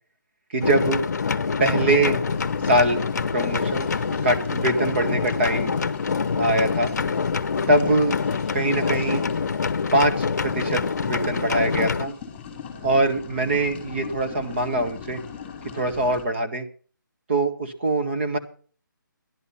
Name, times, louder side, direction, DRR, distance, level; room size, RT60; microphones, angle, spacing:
voice 1, 0.5-1.0 1.6-2.2 2.6-3.0 3.3-3.9 4.2-5.7 6.4-6.9 7.7-8.2 8.5-9.2 9.9-12.1 12.8-15.2 15.7-16.6 17.3-18.4, right 2 dB, 35° right, 7 dB, 1.7 m, -23 dB
sound 1, 0.6-12.1, left 5 dB, 55° left, 0.8 m, -25 dB
sound 2, 2.3-16.2, left 6 dB, 10° left, 2.9 m, -41 dB
12.0 x 11.5 x 5.6 m, 0.42 s
hypercardioid pair, 170°, 11 cm